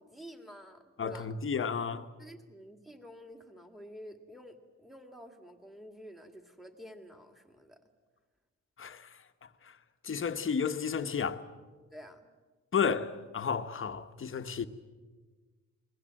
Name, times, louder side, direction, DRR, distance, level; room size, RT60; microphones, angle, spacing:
voice 1, 0.0-1.4 2.2-7.8 11.9-12.3, equal, ahead, 2.2 m, -50 dB
voice 2, 1.0-2.1 8.8-9.2 9.6-9.8 10.0-11.5 12.7-14.7, left 6 dB, 40° left, 1.2 m, -32 dB
29.0 x 21.5 x 7.7 m
wide cardioid pair, 140°, 32 cm